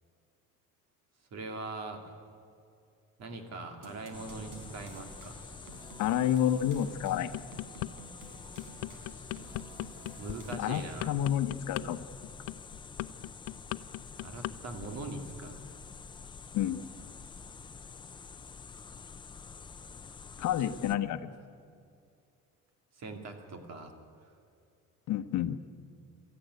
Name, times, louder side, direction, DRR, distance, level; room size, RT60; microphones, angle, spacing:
voice 1, 1.3-2.2 3.2-5.4 10.2-11.2 14.2-15.7 20.6-20.8 23.0-23.9 24.2-24.3, right 3 dB, 50° right, 6 dB, 2.6 m, -42 dB
sound 1, 3.8-11.2, right 2 dB, 80° right, 4.0 m, -52 dB
sound 2, 4.1-21.0, left 5 dB, 15° left, 0.5 m, -48 dB
voice 2, 6.0-7.3 10.6-12.0 16.5-16.8 20.4-21.3 25.1-25.6, left 11 dB, 60° left, 10 dB, 1.0 m, -29 dB
sound 3, 7.1-7.9 8.3-14.5 14.8-15.1, left 18 dB, 80° left, 0.6 m, -38 dB
24.5 x 14.0 x 9.4 m, 2.5 s
cardioid pair, 165°, 33 cm